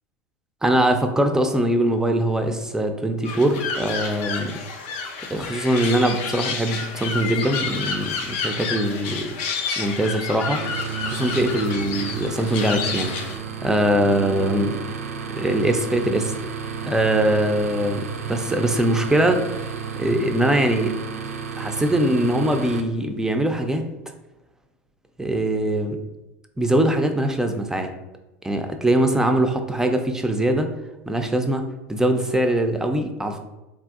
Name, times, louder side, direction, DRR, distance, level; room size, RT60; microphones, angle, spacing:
voice 1, 0.6-4.5 5.3-9.3 9.8-10.7 11.1-13.2 13.6-14.8 15.3-16.3 16.8-19.5 20.0-20.9 21.6-23.8 25.2-26.0 26.6-27.9 28.4-30.7 31.1-31.6 31.9-33.4, right 1 dB, 5° right, 6 dB, 0.4 m, -22 dB
sound 1, 3.2-13.4, left 5 dB, 60° left, 0.5 m, -30 dB
sound 2, 10.6-22.8, right 6 dB, 80° right, 0.3 m, -32 dB
3.4 x 2.5 x 2.4 m, 0.98 s
figure-of-eight pair, 80°, 8 cm